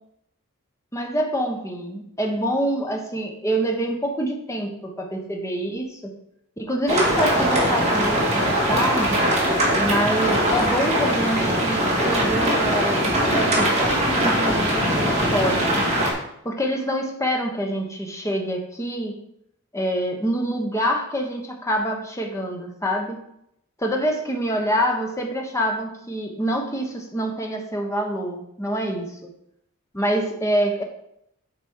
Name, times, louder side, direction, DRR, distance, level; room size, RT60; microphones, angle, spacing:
voice 1, 0.9-6.1 6.6-9.2 9.8-15.8 16.4-19.2 19.7-23.2 23.8-29.3 29.9-30.8, equal, 15° left, 2 dB, 1.1 m, -26 dB
sound 1, 6.9-16.1, right 1 dB, 30° right, 2.3 m, -21 dB
8.5 x 5.0 x 4.7 m, 0.76 s
head